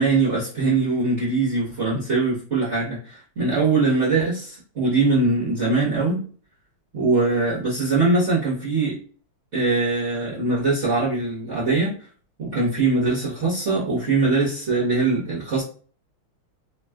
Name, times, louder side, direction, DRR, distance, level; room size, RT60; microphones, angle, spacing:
voice 1, 0.0-6.2 6.9-9.0 9.5-11.9 12.4-15.6, right 3 dB, 45° right, -8 dB, 1.0 m, -22 dB
3.5 x 2.3 x 2.3 m, 0.40 s
omnidirectional pair, 2.4 m